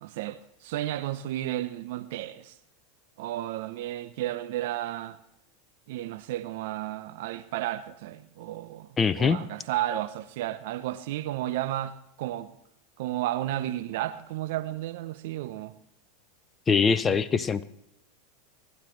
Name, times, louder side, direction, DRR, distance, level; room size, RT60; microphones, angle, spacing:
voice 1, 0.0-2.6 3.2-5.2 5.9-12.6 13.0-15.7 17.0-17.4, right 14 dB, 65° right, 0.7 m, -33 dB
voice 2, 9.0-9.4 16.7-17.6, left 5 dB, 25° left, 0.6 m, -23 dB
25.5 x 12.0 x 3.2 m
hypercardioid pair, 90°, 0 cm